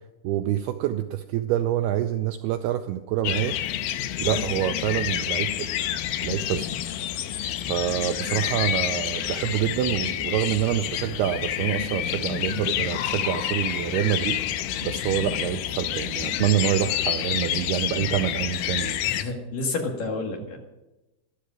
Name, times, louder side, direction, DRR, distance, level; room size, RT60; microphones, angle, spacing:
voice 1, 0.2-3.6 4.2-5.5 6.2-7.0 7.7-14.4 14.8-19.2, right 12 dB, 85° right, 7 dB, 2.3 m, -26 dB
sound 1, 3.2-19.2, left 11 dB, 85° left, 2.1 m, -28 dB
voice 2, 4.2-4.6 19.0-20.6, left 3 dB, 60° left, 2 dB, 2.9 m, -30 dB
13.0 x 13.0 x 6.1 m, 1.0 s
omnidirectional pair, 5.2 m